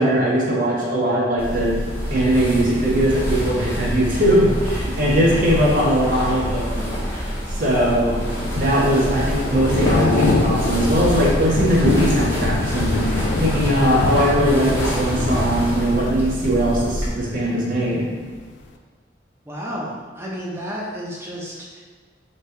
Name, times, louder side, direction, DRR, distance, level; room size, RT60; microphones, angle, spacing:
voice 1, 0.0-1.8 2.1-6.9 7.5-8.2 8.5-18.1, equal, 45° right, -4 dB, 0.9 m, -20 dB
sound 1, 1.4-17.1, equal, 15° left, 0.8 m, -26 dB
Thunder / Rain, 7.9-17.9 18.2-18.5, left 3 dB, 75° left, 0.4 m, -25 dB
voice 2, 19.5-21.8, equal, 15° right, -4 dB, 0.6 m, -31 dB
3.2 x 3.0 x 4.5 m, 1.5 s
head